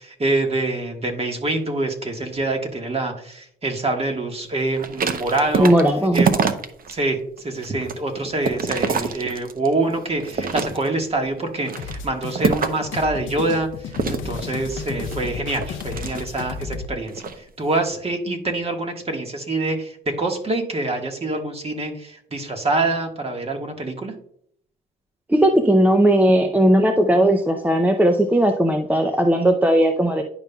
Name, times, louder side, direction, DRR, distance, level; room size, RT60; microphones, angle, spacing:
voice 1, 0.0-5.7 6.1-6.4 6.9-24.1, right 2 dB, 30° right, 3 dB, 1.5 m, -25 dB
sound 1, 4.7-6.9 7.4-9.7 10.2-11.1 11.6-12.9 13.9-16.6 17.1-17.4, right 5 dB, 45° right, 0.8 m, -26 dB
voice 2, 5.6-6.3 25.3-30.2, right 1 dB, 10° right, 5 dB, 0.6 m, -17 dB
sound 2, 11.8-16.9, left 6 dB, 75° left, 0.6 m, -33 dB
10.5 x 5.4 x 2.3 m, 0.65 s
cardioid pair, 90°, 20 cm